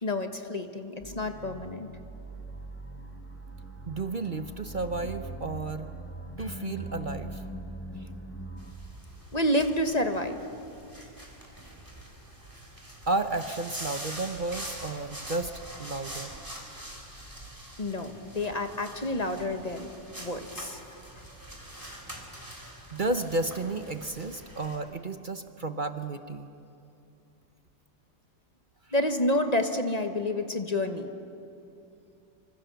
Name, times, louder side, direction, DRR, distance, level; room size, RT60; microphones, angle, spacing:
voice 1, 0.0-1.9 9.3-10.4 17.8-19.9 20.2-20.8 28.9-31.1, left 1 dB, 25° left, 6 dB, 1.2 m, -29 dB
sound 1, 1.0-8.7, right 1 dB, 10° left, 1.5 m, -41 dB
voice 2, 3.9-5.9 6.4-7.4 13.1-15.5 15.8-16.3 22.9-26.5, right 2 dB, 45° right, 8 dB, 0.7 m, -32 dB
sound 2, 8.6-24.8, right 1 dB, 10° right, 3.5 m, -44 dB
26.0 x 25.0 x 6.9 m, 2.8 s
omnidirectional pair, 1.9 m